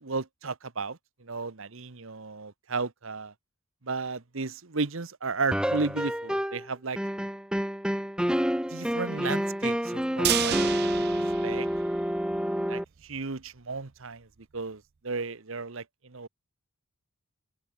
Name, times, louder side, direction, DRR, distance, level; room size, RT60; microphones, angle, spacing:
voice 1, 0.0-3.3 3.8-7.0 8.7-11.0 11.4-11.7 12.7-14.3 14.5-16.3, right 4 dB, 65° right, 1.1 m, -34 dB
sound 1, 5.5-6.7 7.0-12.8, equal, 5° right, 1.3 m, -28 dB
sound 2, 10.2-12.4 12.7-12.8 13.2-13.3, right 12 dB, 50° right, 0.5 m, -31 dB
open air
head